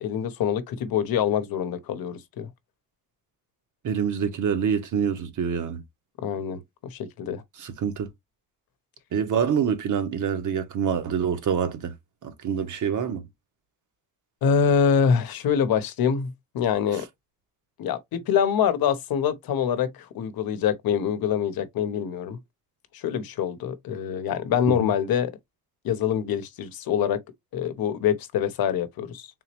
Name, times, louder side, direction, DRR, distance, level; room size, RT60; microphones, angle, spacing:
voice 1, 0.0-2.5 6.2-7.4 14.4-17.0 17.8-22.4 22.9-25.3 25.8-27.2 27.5-29.3, left 7 dB, 80° left, 0.8 m, -25 dB
voice 2, 3.8-5.8 7.6-8.1 9.1-11.9 12.2-13.2 16.9-17.0 24.7-24.9, right 7 dB, 60° right, 0.9 m, -26 dB
3.7 x 2.9 x 2.9 m
cardioid pair, 140°, 35 cm